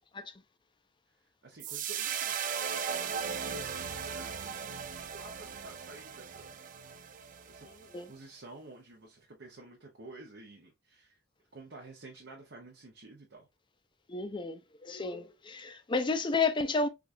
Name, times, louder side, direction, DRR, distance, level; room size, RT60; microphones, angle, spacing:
voice 1, 1.4-2.5 3.7-4.4 5.1-6.6 7.1-7.7 8.1-11.2 11.5-13.5, right 2 dB, 70° right, 0.9 m, -51 dB
sound 1, 1.6-8.0, right 7 dB, 45° right, 0.4 m, -37 dB
voice 2, 14.1-16.9, left 4 dB, 25° left, 0.4 m, -31 dB
4.8 x 2.4 x 2.6 m
head